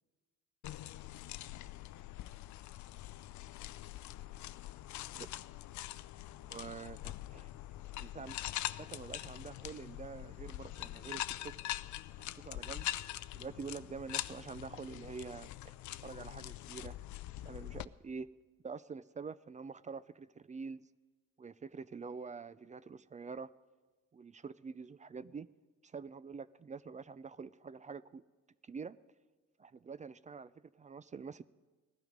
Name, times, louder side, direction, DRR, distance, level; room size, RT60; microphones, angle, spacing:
sound 1, 0.6-17.9, left 15 dB, 75° left, 0.5 m, -43 dB
voice 1, 6.5-7.5 8.0-8.4 8.8-11.6 12.2-12.9 13.3-15.7 16.0-17.0 17.4-18.3 18.6-20.9 21.4-23.5 24.1-25.5 25.8-28.2 28.6-29.0 29.6-31.4, right 5 dB, 25° right, 17 dB, 0.4 m, -46 dB
18.5 x 12.5 x 5.1 m, 1.3 s
cardioid pair, 90°, 30 cm